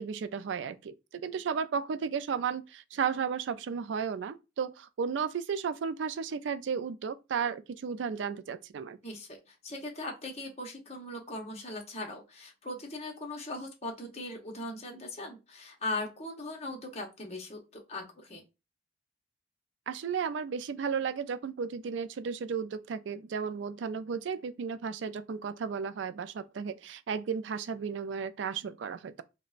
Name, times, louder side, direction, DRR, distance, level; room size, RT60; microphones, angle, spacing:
voice 1, 0.0-9.0 19.9-29.2, right 6 dB, 70° right, 0.3 m, -34 dB
voice 2, 9.0-18.4, left 2 dB, 35° left, 1.0 m, -39 dB
5.0 x 2.1 x 2.5 m
head